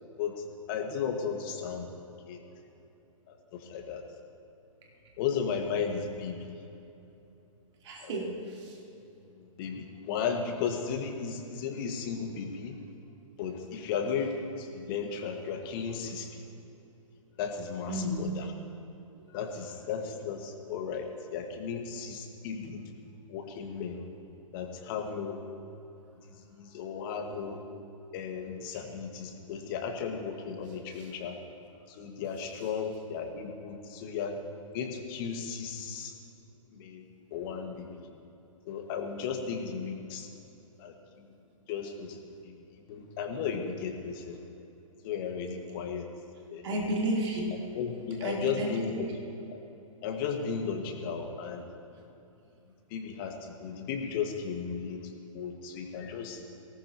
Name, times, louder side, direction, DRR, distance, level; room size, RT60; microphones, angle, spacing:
voice 1, 0.7-1.9 2.3-2.4 3.5-4.0 5.2-6.4 8.0-8.1 9.6-12.8 13.4-16.4 17.4-18.5 19.3-22.8 23.3-24.0 24.5-25.4 26.6-27.6 28.1-31.4 32.0-34.4 34.7-36.1 36.7-37.0 37.3-37.9 38.7-40.3 40.8-40.9 41.7-42.2 42.4-42.5 42.9-44.4 45.0-46.1 46.5-46.8 47.7-49.1 49.5-49.6 50.0-51.6 52.9-53.3 53.6-55.0 55.3-56.4, left 6 dB, 40° left, 4 dB, 1.9 m, -35 dB
voice 2, 7.8-8.7 17.9-18.3 30.9-31.1 46.6-47.4 48.2-49.0, right 1 dB, 55° right, -3 dB, 3.8 m, -32 dB
23.5 x 18.5 x 3.1 m, 2.9 s
figure-of-eight pair, 115°, 18 cm